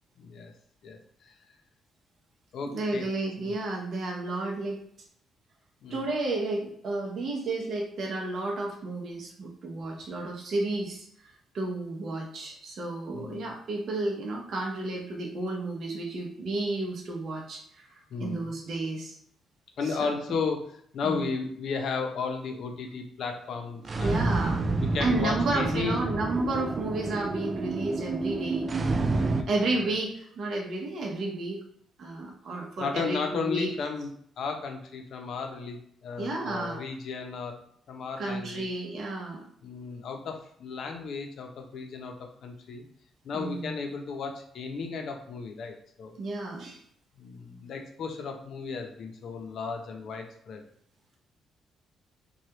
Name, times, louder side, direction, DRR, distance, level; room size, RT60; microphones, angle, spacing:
voice 1, 0.2-0.5 0.8-1.3 2.5-3.1 3.4-3.5 5.8-6.0 13.1-13.4 18.1-18.5 19.8-24.4 24.7-26.0 29.1-30.0 32.8-34.1 34.4-37.5 37.9-38.7 39.6-42.1 42.4-42.8 43.2-46.1 47.2-50.6, left 5 dB, 65° left, 3 dB, 0.6 m, -34 dB
voice 2, 2.7-4.8 5.9-11.0 11.5-19.1 19.8-20.1 21.0-21.3 24.0-24.6 25.0-28.7 29.5-31.6 32.0-33.7 36.2-36.8 38.2-39.4 43.3-43.7 46.2-46.8, right 2 dB, 60° right, -1 dB, 0.7 m, -32 dB
sound 1, 23.8-29.4, right 3 dB, 40° right, 0.3 m, -29 dB
3.2 x 2.3 x 2.9 m, 0.65 s
cardioid pair, 90°, 0 cm